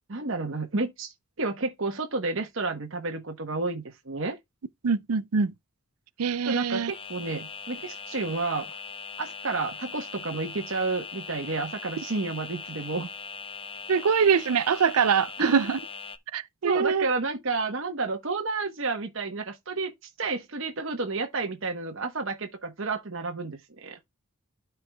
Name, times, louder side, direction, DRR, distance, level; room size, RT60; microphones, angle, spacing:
voice 1, 0.1-4.4 6.5-8.7 9.2-13.1 15.4-15.6 16.6-19.9 20.2-24.0, right 3 dB, 60° right, 1.1 m, -31 dB
voice 2, 4.8-5.5 6.2-6.9 13.9-15.8 16.3-17.1, right 6 dB, 85° right, 0.5 m, -23 dB
sound 1, 6.9-16.2, left 5 dB, 25° left, 0.5 m, -40 dB
12.5 x 4.6 x 2.2 m
head